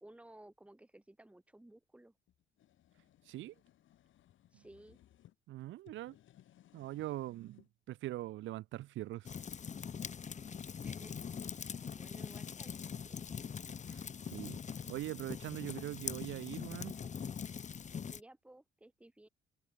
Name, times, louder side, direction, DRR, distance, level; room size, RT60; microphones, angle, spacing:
voice 1, 0.0-2.1 4.5-5.0 10.8-11.3 11.9-13.3 18.1-19.3, right 1 dB, 5° right, 1.5 m, -57 dB
sound 1, 2.3-5.3 5.8-7.7, left 12 dB, 75° left, 3.3 m, -65 dB
voice 2, 5.5-6.2 6.7-9.3 13.9-14.6 14.9-16.9, right 15 dB, 75° right, 0.5 m, -42 dB
sound 2, 9.2-18.2, left 7 dB, 35° left, 0.9 m, -43 dB
cardioid pair, 90°, 20 cm